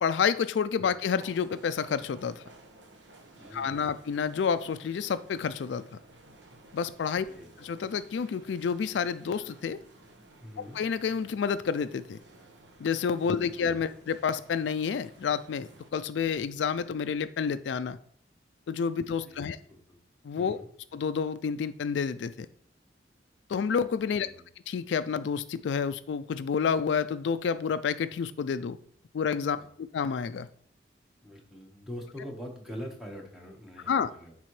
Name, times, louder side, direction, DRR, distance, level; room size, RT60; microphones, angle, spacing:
voice 1, 0.0-2.4 3.5-5.8 6.7-7.3 7.6-9.8 10.6-12.2 12.8-18.0 18.7-19.6 20.2-20.6 20.9-22.5 23.5-24.3 24.7-28.8 29.1-30.5 33.9-34.1, left 6 dB, 75° left, 13 dB, 0.3 m, -29 dB
sound 1, 1.2-15.9, right 2 dB, 80° right, 1.1 m, -54 dB
voice 2, 3.4-3.9 7.3-7.5 10.4-10.8 13.2-13.7 19.2-20.0 20.3-20.7 24.1-24.4 29.5-29.6 31.2-34.4, equal, ahead, 0 dB, 1.2 m, -44 dB
10.0 x 3.7 x 3.2 m, 0.62 s
head